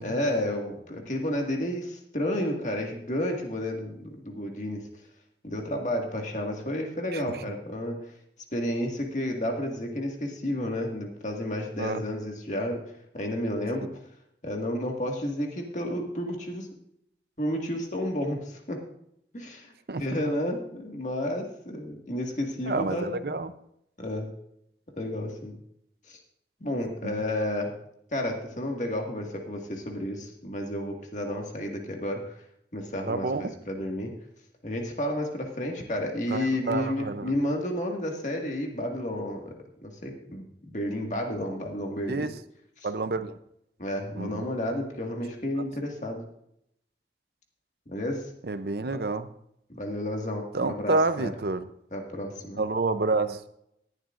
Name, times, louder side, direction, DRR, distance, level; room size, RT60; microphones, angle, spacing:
voice 1, 0.0-4.8 5.4-8.0 8.5-12.8 13.1-13.9 14.4-16.7 17.4-18.8 19.3-23.3 24.0-24.3 25.0-25.5 26.1-26.2 26.6-27.7 28.1-32.3 32.7-34.1 34.6-39.5 39.8-42.3 42.8-42.9 43.8-46.2 47.9-48.3 48.8-49.0 49.7-51.3 51.9-52.6, left 1 dB, 45° left, 1 dB, 1.9 m, -31 dB
voice 2, 22.7-23.5 27.0-27.2 33.1-33.5 36.3-37.3 42.1-42.3 42.8-43.4 44.2-44.5 48.5-49.3 50.5-51.7 52.6-53.5, right 3 dB, 65° right, 12 dB, 0.6 m, -28 dB
18.0 x 11.0 x 2.5 m, 0.76 s
head